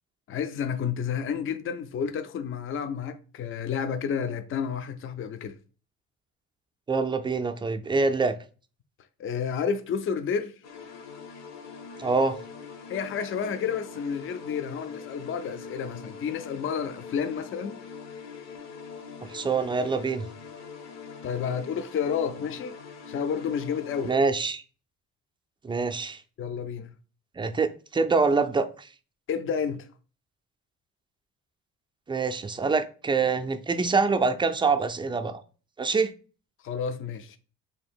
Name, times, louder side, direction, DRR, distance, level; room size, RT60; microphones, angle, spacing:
voice 1, 0.3-5.6 9.2-10.5 12.9-17.8 21.2-22.8 23.1-24.1 26.4-26.9 29.3-29.9 36.6-37.4, left 7 dB, 45° left, 0.4 m, -30 dB
voice 2, 6.9-8.4 12.0-12.4 19.3-20.3 24.0-24.6 25.6-26.2 27.4-28.9 32.1-35.4 35.8-36.1, right 4 dB, 15° right, 0.3 m, -25 dB
sound 1, 10.6-24.2, left 5 dB, 60° left, 0.9 m, -43 dB
2.9 x 2.8 x 4.3 m
cardioid pair, 90°, 30 cm